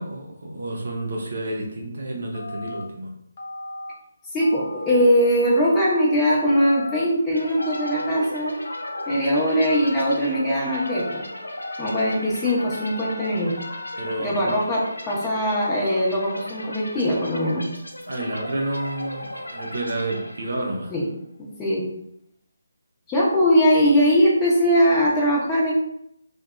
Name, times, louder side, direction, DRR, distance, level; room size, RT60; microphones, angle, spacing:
voice 1, 0.0-3.1 14.0-14.5 18.1-20.9, right 1 dB, 60° right, -1 dB, 0.6 m, -30 dB
Telephone, 2.3-2.8 3.4-3.9 4.4-5.0 5.4-6.0 6.5-7.0 7.6-8.2 8.6-9.2 9.6-10.1 10.7-11.2 11.6-12.2 12.6-13.1 13.6-14.2, left 2 dB, 50° left, 0.6 m, -36 dB
voice 2, 4.3-8.5 9.1-11.2 11.8-13.5 14.2-17.6 20.9-21.1 21.6-21.8 23.1-25.7, equal, 15° left, -6 dB, 0.8 m, -21 dB
sound 1, 7.3-20.9, left 1 dB, 85° left, 0.4 m, -37 dB
2.6 x 2.1 x 2.4 m, 0.77 s
figure-of-eight pair, 150°, 0 cm